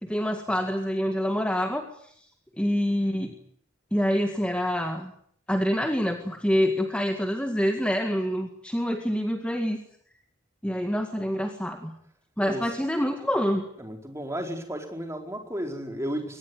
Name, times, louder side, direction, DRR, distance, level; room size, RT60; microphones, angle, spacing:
voice 1, 0.0-1.8 2.6-3.3 3.9-5.1 5.5-9.8 10.6-11.9 12.4-13.6, equal, 5° left, 4 dB, 2.0 m, -26 dB
voice 2, 13.8-16.4, equal, 15° right, 3 dB, 4.6 m, -33 dB
24.5 x 20.0 x 9.6 m, 0.65 s
head